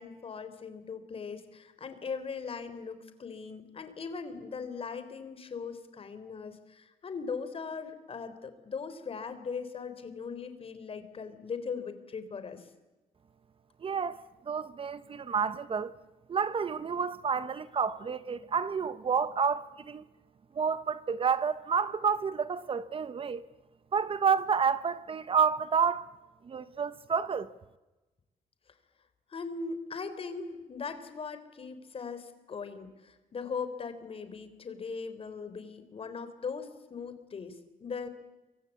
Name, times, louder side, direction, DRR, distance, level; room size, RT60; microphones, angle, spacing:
voice 1, 0.0-12.7 29.3-38.1, left 5 dB, 40° left, 3.7 m, -39 dB
voice 2, 13.8-15.9 16.3-20.1 20.6-23.5 23.9-26.0 26.5-27.5, right 6 dB, 40° right, 1.0 m, -29 dB
27.5 x 24.5 x 8.4 m
cardioid pair, 120°, 15 cm